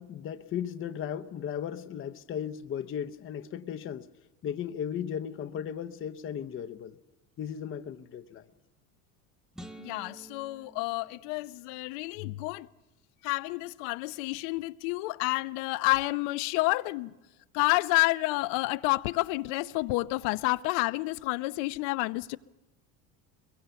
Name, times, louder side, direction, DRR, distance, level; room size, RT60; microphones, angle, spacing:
voice 1, 0.0-4.1 4.4-7.0 7.4-8.4, left 8 dB, 30° left, 0.8 m, -36 dB
sound 1, 9.5-11.9, right 1 dB, ahead, 0.9 m, -50 dB
voice 2, 9.8-12.7 13.2-17.1 17.5-22.4, left 21 dB, 70° left, 0.7 m, -29 dB
22.5 x 22.0 x 6.9 m
supercardioid pair, 110°, 41 cm